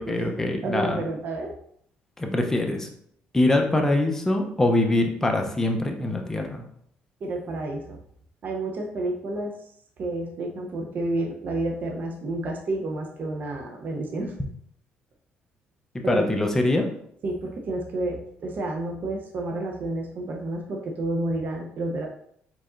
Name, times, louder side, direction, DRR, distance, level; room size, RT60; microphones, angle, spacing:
voice 1, 0.0-1.0 2.2-2.9 3.3-6.6 16.1-16.9, left 2 dB, 10° left, 3 dB, 0.7 m, -23 dB
voice 2, 0.6-1.6 7.2-8.0 8.4-9.5 10.0-14.3 16.0-16.3 17.2-22.1, right 2 dB, 50° right, 1 dB, 0.8 m, -30 dB
4.7 x 4.2 x 2.6 m, 0.69 s
cardioid pair, 110°, 4 cm